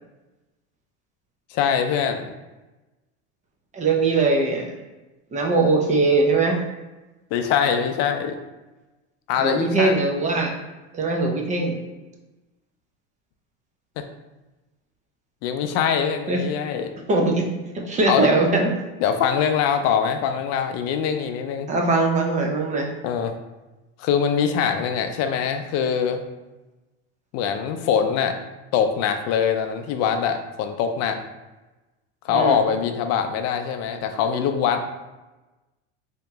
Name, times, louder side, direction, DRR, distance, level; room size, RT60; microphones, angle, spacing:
voice 1, 1.5-2.3 7.3-8.3 9.3-9.9 14.0-14.1 15.4-16.9 18.1-18.3 19.0-21.7 23.0-23.4 24.0-26.2 27.3-28.3 28.7-31.2 32.2-34.8, left 7 dB, 50° left, 7 dB, 0.5 m, -23 dB
voice 2, 3.7-4.7 5.3-6.6 9.4-10.5 10.9-11.8 16.3-16.4 17.1-17.5 17.8-18.7 21.7-22.9 32.3-32.6, right 3 dB, 20° right, 0 dB, 0.4 m, -21 dB
2.9 x 2.8 x 3.4 m, 1.1 s
supercardioid pair, 125°, 33 cm